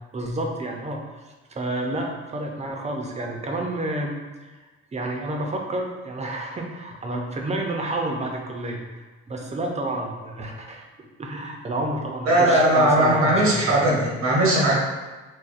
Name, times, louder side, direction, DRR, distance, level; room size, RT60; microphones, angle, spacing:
voice 1, 0.1-1.0 1.5-4.5 4.9-9.0 9.3-10.8 11.2-13.4 13.7-13.8, right 1 dB, 25° right, 1 dB, 0.5 m, -30 dB
voice 2, 12.2-14.7, right 1 dB, 65° right, -3 dB, 0.9 m, -19 dB
4.1 x 2.2 x 2.5 m, 1.2 s
cardioid pair, 90°, 30 cm